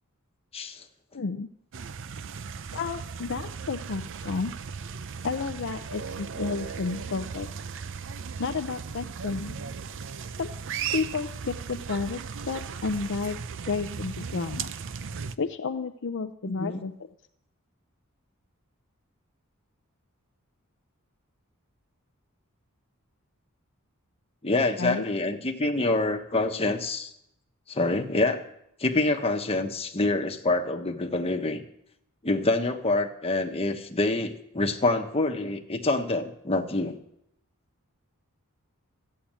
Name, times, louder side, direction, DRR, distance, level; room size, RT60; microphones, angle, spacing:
voice 1, 0.5-0.8 16.4-16.8 24.4-27.1 27.7-28.4 28.8-31.6 32.2-36.9, left 2 dB, 30° left, 4 dB, 1.2 m, -26 dB
voice 2, 1.1-1.5 2.7-4.5 5.2-7.5 8.4-9.6 10.4-10.5 10.9-12.2 12.5-13.4 13.7-14.7 15.4-16.9 24.8-25.1, left 4 dB, 60° left, 8 dB, 0.6 m, -31 dB
sound 1, 1.7-15.4, right 6 dB, 60° right, 0.6 m, -37 dB
13.5 x 8.6 x 8.8 m, 0.77 s
head